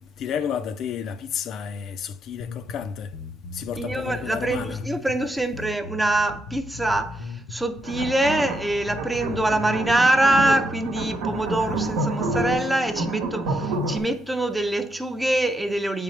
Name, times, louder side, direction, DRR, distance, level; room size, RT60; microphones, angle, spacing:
voice 1, 0.2-3.1 3.5-4.8, left 8 dB, 50° left, 0.4 m, -31 dB
sound 1, 2.4-12.0, left 4 dB, 70° left, 0.8 m, -38 dB
voice 2, 3.8-16.0, right 1 dB, 5° right, 0.5 m, -24 dB
sound 2, 7.8-14.0, right 2 dB, 80° right, 1.0 m, -29 dB
8.3 x 3.7 x 3.2 m
supercardioid pair, 105°, 0 cm